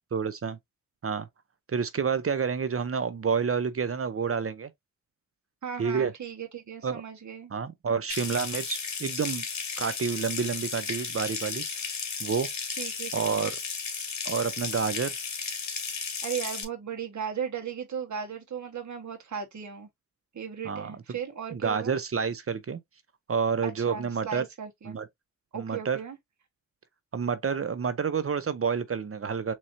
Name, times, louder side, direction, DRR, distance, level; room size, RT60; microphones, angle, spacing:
voice 1, 0.1-0.6 1.0-1.3 1.7-4.7 5.8-6.1 6.8-7.0 7.5-9.4 9.8-11.6 12.2-12.5 13.1-13.5 14.2-15.1 20.6-21.2 21.5-22.8 23.3-24.4 24.8-25.1 25.5-26.0 27.1-29.5, right 6 dB, 45° right, 0.7 m, -29 dB
voice 2, 5.6-7.5 12.8-13.5 16.2-19.9 20.3-21.9 23.6-24.9 25.5-26.2, right 7 dB, 70° right, 1.5 m, -36 dB
Water tap faucet / Sink (filling or washing) / Trickle dribble, 8.1-16.6, left 5 dB, 60° left, 1.4 m, -34 dB
4.3 x 3.0 x 2.6 m
cardioid pair, 55°, 31 cm